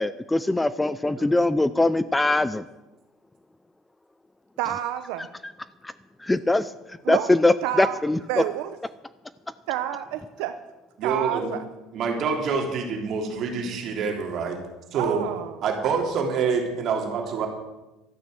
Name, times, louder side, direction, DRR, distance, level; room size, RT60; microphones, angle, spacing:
voice 1, 0.0-2.7 6.2-6.7 7.1-8.4, left 2 dB, 10° left, 16 dB, 0.4 m, -22 dB
voice 2, 4.6-5.3 7.0-7.3 7.6-8.0 8.3-8.8 9.7-10.5 11.0-11.7 14.9-15.6, right 12 dB, 80° right, 9 dB, 0.8 m, -29 dB
voice 3, 11.0-11.5 11.9-14.6 14.9-15.3 15.6-17.5, right 5 dB, 45° right, 2 dB, 3.2 m, -26 dB
12.5 x 9.3 x 7.8 m, 1.0 s
cardioid pair, 130°, 0 cm